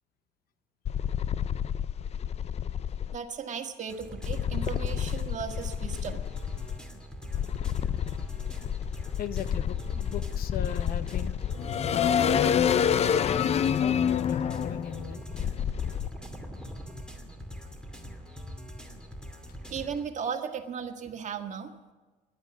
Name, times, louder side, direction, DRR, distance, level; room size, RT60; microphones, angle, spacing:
sound 1, 0.9-3.2 4.2-6.8 7.3-16.1, left 8 dB, 40° left, 0.5 m, -28 dB
voice 1, 3.1-6.2 19.7-21.7, right 7 dB, 45° right, 5 dB, 1.7 m, -36 dB
sound 2, 3.9-20.0, equal, 5° left, 2.5 m, -43 dB
voice 2, 9.2-11.3 11.9-15.2, left 8 dB, 60° left, 12 dB, 0.9 m, -38 dB
18.5 x 11.0 x 6.1 m, 1.3 s
cardioid pair, 110°, 17 cm